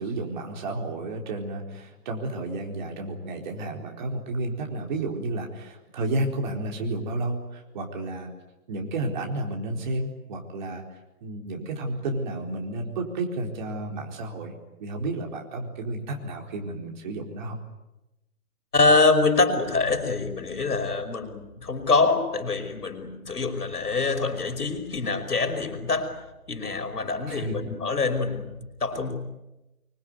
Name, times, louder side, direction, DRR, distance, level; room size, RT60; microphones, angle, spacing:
voice 1, 0.0-8.3 8.7-10.8 11.2-17.6 27.3-27.6, right 2 dB, 30° right, 2 dB, 4.2 m, -31 dB
voice 2, 18.7-26.2 26.5-29.1, left 3 dB, 90° left, 7 dB, 5.5 m, -25 dB
25.5 x 24.5 x 9.5 m, 0.97 s
hypercardioid pair, 160°, 44 cm